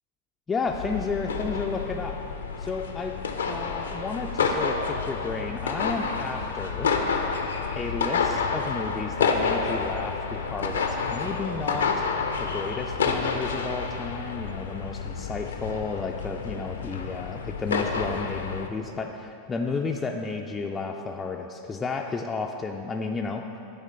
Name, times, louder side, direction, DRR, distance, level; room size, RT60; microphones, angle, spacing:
voice 1, 0.5-2.2 2.6-3.2 3.5-6.9 7.7-11.9 12.4-23.4, left 4 dB, 15° left, 1 dB, 0.3 m, -32 dB
sound 1, 0.7-18.7, left 5 dB, 70° left, 0.5 m, -29 dB
10.0 x 3.5 x 5.5 m, 2.9 s
figure-of-eight pair, 90°, 0 cm